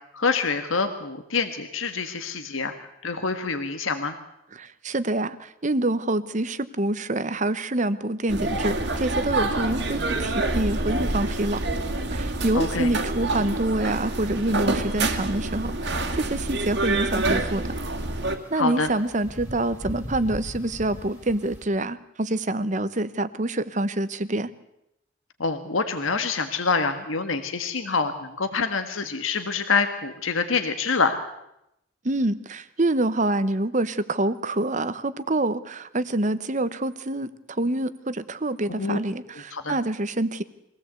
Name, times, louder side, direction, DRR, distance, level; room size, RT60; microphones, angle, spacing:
voice 1, 0.1-2.7 3.0-4.1 12.5-12.9 18.5-18.9 25.4-31.2 38.8-39.0 39.5-39.8, left 4 dB, 75° left, 7 dB, 1.6 m, -26 dB
voice 2, 4.5-11.6 12.1-17.7 18.5-24.5 32.0-40.4, right 2 dB, 35° right, 14 dB, 0.9 m, -26 dB
sound 1, 8.3-18.4, right 2 dB, 55° right, 2.1 m, -27 dB
sound 2, 10.0-21.7, equal, 5° right, 2.9 m, -44 dB
23.5 x 16.5 x 8.2 m, 0.84 s
head